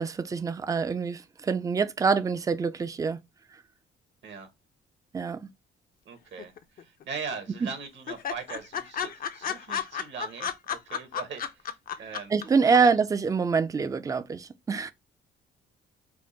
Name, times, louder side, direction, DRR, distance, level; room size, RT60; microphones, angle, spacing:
voice 1, 0.0-3.2 5.1-5.5 12.3-14.9, right 5 dB, 15° right, 0.3 m, -25 dB
voice 2, 6.0-12.3 12.6-13.0, right 5 dB, 65° right, 1.0 m, -40 dB
sound 1, 6.4-7.0 7.3-7.4 7.7-7.8 8.1-12.4 12.7-12.8, left 8 dB, 45° left, 0.5 m, -32 dB
3.6 x 2.2 x 3.7 m
cardioid pair, 90°, 20 cm